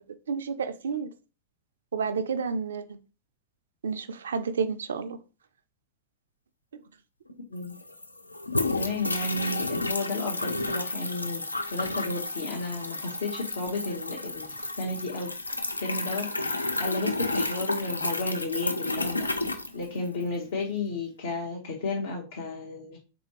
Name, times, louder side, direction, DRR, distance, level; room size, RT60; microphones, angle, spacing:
voice 1, 0.3-1.1 1.9-3.0 3.8-5.2 6.7-6.8, right 5 dB, 65° right, 0.3 m, -30 dB
sound 1, 7.3-7.4 7.6-20.4, left 2 dB, 85° left, 0.3 m, -31 dB
voice 2, 8.7-15.3 15.8-19.3 19.7-23.0, left 3 dB, 60° left, 0.8 m, -33 dB
3.6 x 2.6 x 2.9 m
figure-of-eight pair, 90°, 0 cm